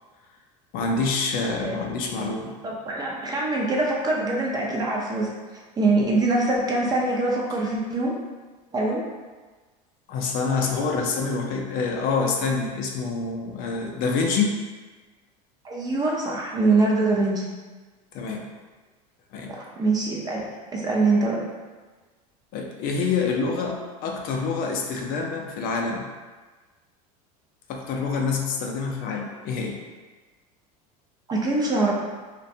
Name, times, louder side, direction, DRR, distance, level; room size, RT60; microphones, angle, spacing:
voice 1, 0.7-2.5 10.1-14.5 18.1-18.5 19.3-19.5 22.5-26.1 27.7-29.8, left 4 dB, 50° left, 1 dB, 0.4 m, -26 dB
voice 2, 2.6-5.3 5.8-8.1 8.7-9.0 15.6-17.4 19.6-21.4 31.3-31.9, right 2 dB, 20° right, -3 dB, 0.4 m, -23 dB
2.4 x 2.1 x 2.6 m, 1.3 s
supercardioid pair, 120°, 19 cm